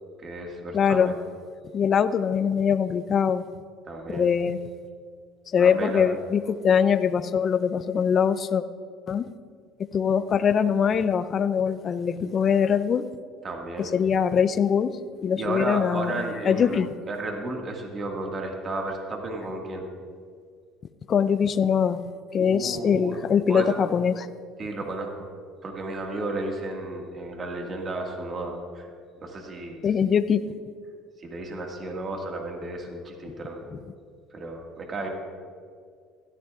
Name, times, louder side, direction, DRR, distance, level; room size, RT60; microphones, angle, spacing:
voice 1, 0.2-1.2 3.9-4.3 5.6-6.1 13.4-13.9 15.3-19.9 22.4-23.2 23.5-23.7 24.6-25.3 25.6-28.9 29.2-30.1 31.2-33.6 34.3-35.1, right 2 dB, 35° right, 1 dB, 1.8 m, -33 dB
voice 2, 0.7-1.1 1.7-3.4 4.1-4.6 5.5-8.6 9.1-9.2 9.9-13.0 13.9-14.9 15.2-16.9 21.1-22.0 22.3-24.3 29.8-30.4, left 7 dB, 40° left, 13 dB, 0.5 m, -22 dB
16.5 x 13.5 x 2.4 m, 2.1 s
supercardioid pair, 100°, 0 cm